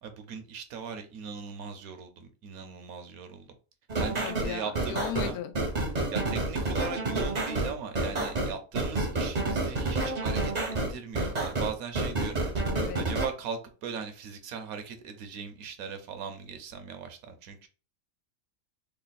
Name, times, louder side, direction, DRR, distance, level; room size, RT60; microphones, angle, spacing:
voice 1, 0.0-3.5 4.0-5.4 6.1-10.5 10.9-12.4 13.0-17.7, right 6 dB, 75° right, 1.1 m, -39 dB
sound 1, 3.9-13.3, right 2 dB, 40° right, 0.7 m, -29 dB
voice 2, 4.2-5.5 12.7-13.1, left 10 dB, 85° left, 1.1 m, -36 dB
3.3 x 2.3 x 3.9 m
omnidirectional pair, 1.6 m